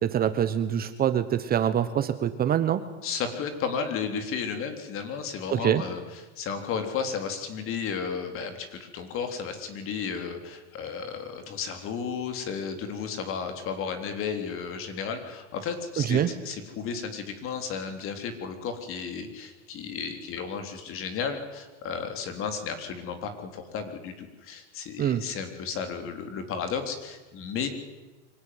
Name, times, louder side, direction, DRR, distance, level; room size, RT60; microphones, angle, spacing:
voice 1, 0.0-2.8 5.5-5.8 16.0-16.3 25.0-25.2, right 10 dB, 25° right, 11 dB, 1.1 m, -25 dB
voice 2, 3.0-27.7, left 6 dB, 35° left, 7 dB, 3.6 m, -33 dB
24.5 x 17.5 x 9.6 m, 1.2 s
supercardioid pair, 140°, 36 cm